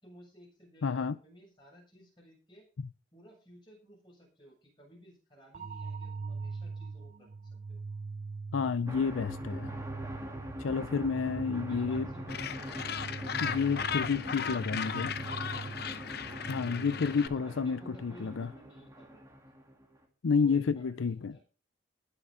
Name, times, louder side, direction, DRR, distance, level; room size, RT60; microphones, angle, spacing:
voice 1, 0.0-2.7 3.1-7.3 7.7-7.8 11.7-12.4 14.6-16.0 17.3-19.2 20.4-21.4, equal, 25° left, 7.4 m, -56 dB
voice 2, 0.8-1.2 8.5-9.7 10.6-12.1 13.4-15.1 16.5-18.5 20.2-21.4, left 5 dB, 85° left, 0.5 m, -30 dB
sound 1, 5.5-17.5, right 4 dB, 40° right, 0.5 m, -43 dB
sound 2, 8.9-20.0, equal, 15° right, 2.1 m, -43 dB
Gull seagull, 12.3-17.3, left 7 dB, 55° left, 0.8 m, -36 dB
19.5 x 6.8 x 3.8 m
head